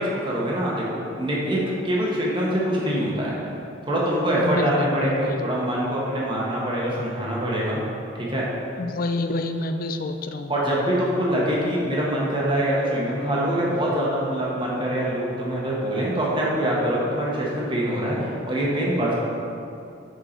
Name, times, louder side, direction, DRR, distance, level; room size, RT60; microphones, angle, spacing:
voice 1, 0.0-3.3 3.9-7.8 8.1-8.4 10.5-19.1, right 1 dB, 25° right, -5 dB, 1.1 m, -24 dB
voice 2, 4.4-5.5 8.8-10.5, left 2 dB, 45° left, 7 dB, 0.3 m, -28 dB
6.5 x 4.6 x 4.4 m, 2.6 s
head